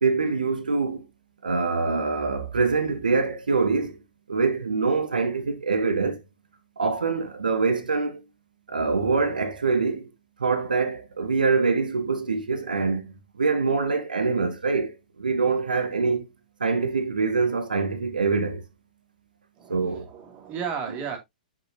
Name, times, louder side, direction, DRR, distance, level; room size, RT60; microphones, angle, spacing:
voice 1, 0.0-1.0 1.4-4.0 4.3-6.2 6.8-8.2 8.7-10.1 10.4-16.3 16.6-18.6 19.7-20.1, right 4 dB, 75° right, 1.3 m, -24 dB
voice 2, 19.6-21.2, right 7 dB, 30° right, 2.6 m, -34 dB
7.5 x 6.2 x 2.8 m
figure-of-eight pair, 110°, 5 cm